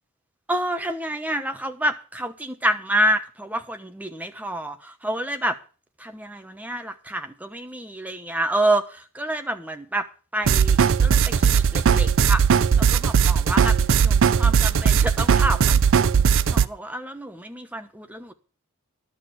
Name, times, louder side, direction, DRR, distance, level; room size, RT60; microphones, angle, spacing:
voice 1, 0.5-5.5 6.0-8.8 9.1-10.0 10.3-12.4 12.8-13.7 14.0-16.1 16.5-18.3, right 1 dB, 5° right, 1.0 m, -28 dB
sound 1, 10.5-16.6, right 6 dB, 60° right, 0.5 m, -18 dB
11.5 x 6.4 x 7.8 m
head